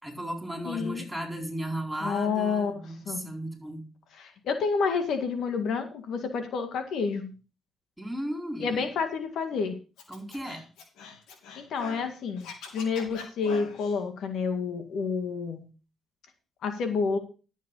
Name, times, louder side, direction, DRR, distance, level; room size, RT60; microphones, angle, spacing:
voice 1, 0.0-3.9 8.0-8.9 10.1-10.7, right 1 dB, 5° right, 4 dB, 4.4 m, -35 dB
voice 2, 0.7-1.0 2.0-3.3 4.2-7.3 8.6-9.8 11.5-15.7 16.6-17.2, left 5 dB, 75° left, 7 dB, 1.9 m, -29 dB
Scratching (performance technique), 10.0-12.1 12.4-14.0, left 4 dB, 90° left, 2.9 m, -43 dB
11.5 x 7.4 x 5.5 m, 0.34 s
cardioid pair, 90°, 0 cm